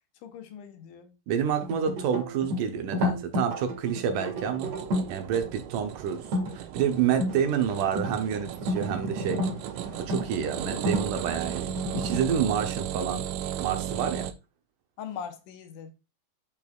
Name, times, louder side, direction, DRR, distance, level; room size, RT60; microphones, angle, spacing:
voice 1, 0.2-1.1 5.4-5.5 7.2-7.3 14.0-14.2 15.0-15.9, left 7 dB, 75° left, 2.2 m, -41 dB
voice 2, 1.3-4.7 5.1-6.2 6.5-9.4 10.0-13.2 13.6-14.3, right 8 dB, 70° right, 2.3 m, -28 dB
sound 1, 1.6-5.2 6.2-6.5 7.0-12.2, left 1 dB, 50° right, 2.7 m, -32 dB
sound 2, 4.0-14.3, right 10 dB, 90° right, 1.6 m, -36 dB
8.4 x 5.4 x 2.4 m
omnidirectional pair, 4.0 m